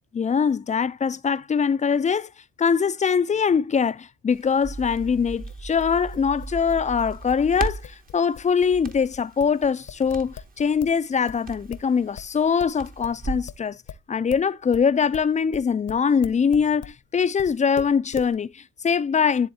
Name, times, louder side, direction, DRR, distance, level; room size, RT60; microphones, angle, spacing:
voice 1, 0.2-2.3 2.6-13.8 14.1-19.5, left 6 dB, 25° left, 0.4 m, -23 dB
Crackle, 4.3-13.5, right 3 dB, 30° right, 0.9 m, -37 dB
sound 1, 5.5-11.0 11.3-17.0 17.4-18.4, left 8 dB, 55° left, 0.8 m, -42 dB
10.5 x 3.5 x 2.7 m
cardioid pair, 90°, 30 cm